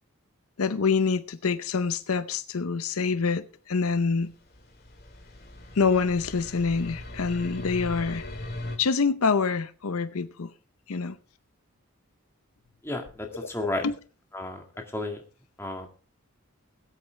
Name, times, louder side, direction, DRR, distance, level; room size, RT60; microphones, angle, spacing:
voice 1, 0.6-4.3 5.8-8.2 8.8-10.5 10.9-11.2 13.8-13.9, left 5 dB, 80° left, 0.7 m, -26 dB
sound 1, 4.0-8.8, left 1 dB, 45° left, 2.2 m, -39 dB
voice 2, 12.8-13.8 14.3-14.6 14.9-15.2 15.6-15.9, left 2 dB, 10° left, 1.8 m, -32 dB
20.5 x 8.4 x 3.3 m
head